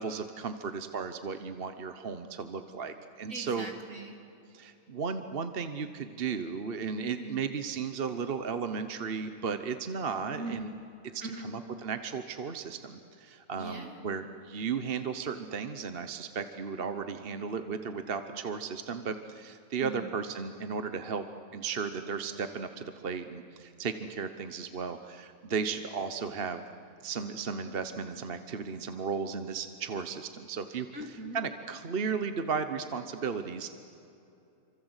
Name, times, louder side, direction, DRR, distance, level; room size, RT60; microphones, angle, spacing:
voice 1, 0.0-3.7 4.5-10.7 11.1-21.2 21.5-26.6 27.0-30.9 31.3-33.7, right 5 dB, 45° right, 9 dB, 1.1 m, -35 dB
voice 2, 3.3-4.2 7.2-7.5 10.3-10.7 11.2-11.6 13.6-14.1 19.8-20.1 30.9-31.4, right 2 dB, 65° right, 3 dB, 3.4 m, -41 dB
27.5 x 25.5 x 8.1 m, 2.8 s
omnidirectional pair, 1.5 m